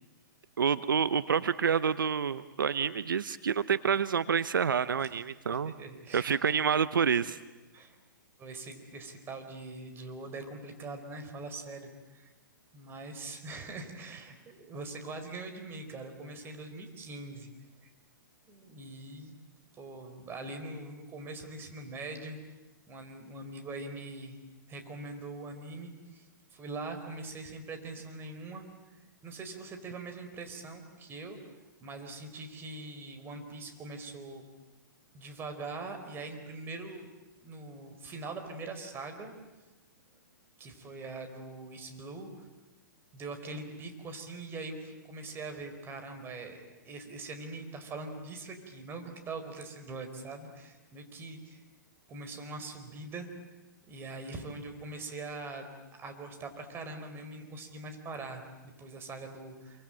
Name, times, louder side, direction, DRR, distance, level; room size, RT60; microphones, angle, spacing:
voice 1, 0.6-5.7 6.1-7.4, right 7 dB, 85° right, 15 dB, 0.9 m, -28 dB
voice 2, 5.5-6.4 7.7-8.0 8.4-12.3 12.7-17.5 17.8-17.9 18.5-19.3 19.7-22.4 22.9-24.4 24.7-26.2 26.5-28.6 29.2-31.4 31.8-34.4 35.1-37.1 37.4-39.3 40.6-42.5 43.1-51.6 52.1-53.3 53.9-59.8, right 3 dB, 20° right, 6 dB, 4.5 m, -42 dB
27.5 x 24.0 x 9.0 m, 1.1 s
hypercardioid pair, 130°, 11 cm